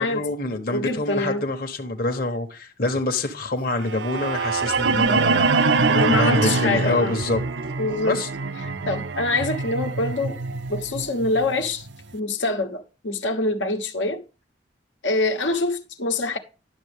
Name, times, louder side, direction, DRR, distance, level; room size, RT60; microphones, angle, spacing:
voice 1, 0.0-7.4 8.0-8.3, left 2 dB, 50° left, 1.1 m, -26 dB
voice 2, 0.7-1.5 5.9-7.2 7.8-8.2 8.9-10.4 10.7-11.9 12.1-14.2 15.0-16.4, left 2 dB, 85° left, 1.3 m, -25 dB
sound 1, 3.8-11.9, right 4 dB, 80° right, 0.6 m, -24 dB
11.5 x 7.2 x 3.4 m
head